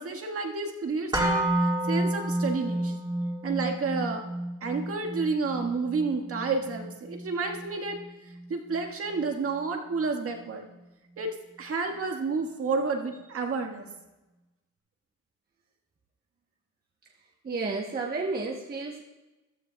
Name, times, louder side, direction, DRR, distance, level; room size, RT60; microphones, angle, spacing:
voice 1, 0.0-1.5 1.8-2.9 3.4-4.2 4.6-8.0 8.5-10.7 11.2-11.3 11.6-13.9, right 4 dB, 50° right, 3 dB, 1.7 m, -30 dB
sound 1, 1.1-9.2 9.5-9.6, right 1 dB, 15° right, 2.5 m, -31 dB
voice 2, 17.4-19.0, right 3 dB, 30° right, -1 dB, 1.0 m, -31 dB
15.0 x 13.0 x 2.3 m, 1.1 s
cardioid pair, 130°, 30 cm